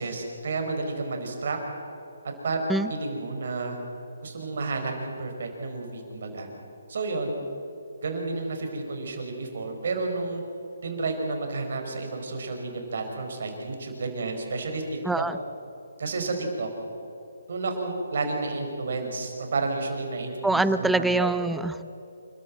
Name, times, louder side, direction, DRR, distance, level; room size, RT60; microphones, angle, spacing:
voice 1, 0.0-1.6 2.4-3.8 4.2-6.5 6.9-7.4 8.0-10.4 10.8-14.8 15.1-15.2 16.0-16.7 17.5-21.3, right 3 dB, 60° right, 4 dB, 5.1 m, -31 dB
voice 2, 15.0-15.4 20.4-21.8, right 2 dB, 5° right, 13 dB, 0.6 m, -24 dB
28.0 x 13.5 x 7.8 m, 2.8 s
hypercardioid pair, 150°, 0 cm